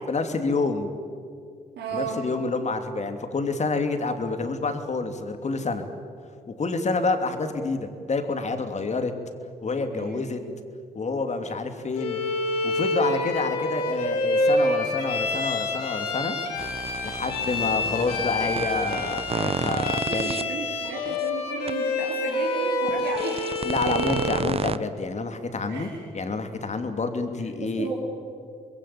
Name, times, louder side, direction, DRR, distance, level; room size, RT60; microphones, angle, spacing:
voice 1, 0.1-0.9 1.9-5.9 6.5-9.1 9.6-10.4 10.9-12.2 12.6-16.4 17.0-20.3 23.6-27.9, left 3 dB, 40° left, 7 dB, 3.0 m, -28 dB
voice 2, 1.8-2.2 9.9-10.2 20.1-23.6 23.9-24.2 25.7-26.0 27.6-27.9, right 5 dB, 65° right, -3 dB, 4.0 m, -34 dB
Bowed string instrument, 12.0-24.5, left 2 dB, 85° left, 2.8 m, -27 dB
sound 1, 16.6-20.4 21.1-21.2 21.7-21.8 23.0-24.8, right 5 dB, 30° right, 0.9 m, -31 dB
25.5 x 21.5 x 8.7 m, 2.3 s
hypercardioid pair, 50°, 19 cm